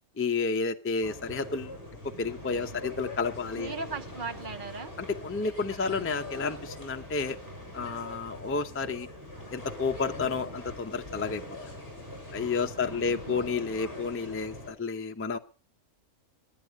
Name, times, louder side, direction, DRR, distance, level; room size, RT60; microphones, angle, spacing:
voice 1, 0.2-1.7 2.0-3.7 5.0-7.4 7.7-9.1 9.5-11.4 12.3-15.4, left 4 dB, 15° left, 6 dB, 0.5 m, -31 dB
sound 1, 1.0-14.7, left 1 dB, 15° right, 7.7 m, -43 dB
voice 2, 3.6-4.9 12.9-13.4, right 4 dB, 40° right, 11 dB, 0.9 m, -38 dB
22.5 x 9.1 x 5.2 m, 0.36 s
omnidirectional pair, 1.5 m